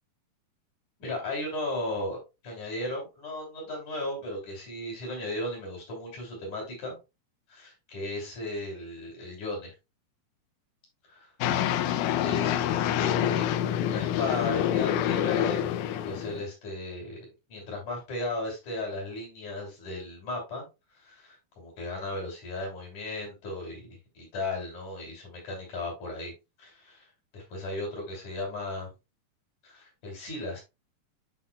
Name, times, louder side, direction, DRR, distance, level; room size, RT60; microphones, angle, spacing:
voice 1, 1.0-2.2 2.4-7.0 7.5-9.7 11.1-11.3 12.2-15.7 16.0-17.2 17.5-20.7 21.0-26.3 26.6-27.1 27.3-28.9 29.6-30.6, left 2 dB, 65° left, 4.4 m, -36 dB
sound 1, 11.4-16.4, left 10 dB, 80° left, 1.9 m, -27 dB
11.5 x 4.1 x 2.2 m
omnidirectional pair, 3.8 m